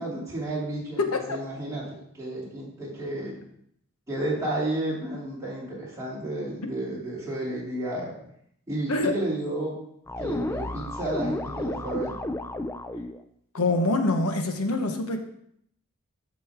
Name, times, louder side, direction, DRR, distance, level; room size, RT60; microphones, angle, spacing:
voice 1, 0.0-3.3 4.1-8.2 8.7-9.8 10.2-12.2, right 1 dB, 15° right, -7 dB, 3.0 m, -32 dB
voice 2, 1.0-1.4 8.9-9.1 13.5-15.2, left 2 dB, 85° left, 5 dB, 1.1 m, -25 dB
sound 1, 10.1-13.2, left 1 dB, 10° left, 0.3 m, -32 dB
13.5 x 5.2 x 3.6 m, 0.70 s
head